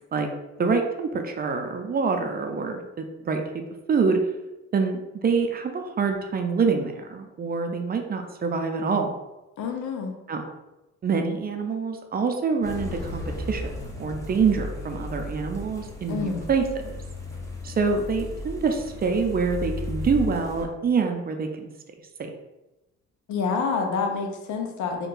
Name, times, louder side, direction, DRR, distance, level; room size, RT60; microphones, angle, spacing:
voice 1, 0.6-3.4 3.9-4.2 4.7-9.1 10.3-10.4 11.0-16.9 17.6-21.7 22.2-22.3, right 5 dB, 30° right, 4 dB, 0.5 m, -26 dB
voice 2, 9.6-10.1 16.1-16.4 23.3-25.1, left 5 dB, 75° left, 3 dB, 0.7 m, -27 dB
sound 1, 12.6-20.6, left 2 dB, 10° left, 0.7 m, -35 dB
2.5 x 2.3 x 3.7 m, 1.0 s
cardioid pair, 90°, 30 cm